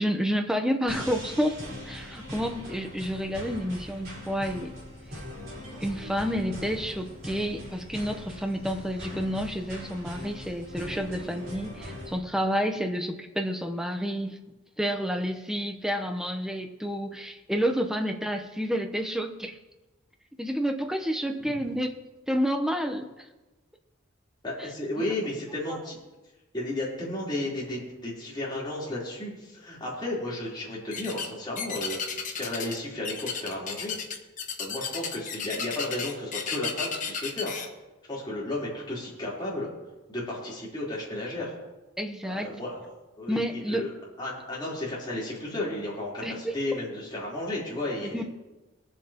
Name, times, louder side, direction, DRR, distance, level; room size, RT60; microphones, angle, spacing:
voice 1, 0.0-1.6 1.9-4.7 5.8-14.4 14.8-19.6 20.4-22.0 22.3-23.3 24.6-24.7 25.0-25.1 25.7-25.8 42.0-42.6 43.3-43.9 46.2-46.5 48.1-48.2, equal, 5° right, 5 dB, 0.8 m, -29 dB
sound 1, 0.9-12.2, left 1 dB, 50° right, 4.0 m, -41 dB
voice 2, 24.4-26.0 26.5-32.0 32.3-34.0 34.6-37.5 38.1-39.7 40.1-41.5 42.4-42.8 43.2-43.9 44.2-48.2, left 1 dB, 20° left, -6 dB, 3.6 m, -33 dB
sound 2, 30.9-31.3 31.6-32.8 33.0-37.7, left 6 dB, 40° left, 1.1 m, -33 dB
22.5 x 7.6 x 2.9 m, 1.1 s
head